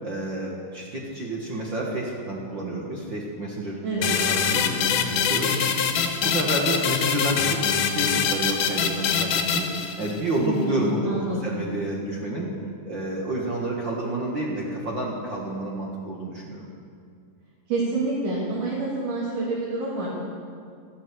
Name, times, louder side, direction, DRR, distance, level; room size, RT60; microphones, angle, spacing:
voice 1, 0.0-5.6 6.2-7.6 7.9-9.7 10.0-12.5 12.8-16.7, right 1 dB, 45° right, -3 dB, 1.9 m, -29 dB
sound 1, 4.0-10.4, left 7 dB, 80° left, 2.6 m, -24 dB
voice 2, 10.4-11.5 17.7-20.1, right 3 dB, 75° right, -7 dB, 4.2 m, -28 dB
14.0 x 12.5 x 6.8 m, 2.2 s
omnidirectional pair, 3.6 m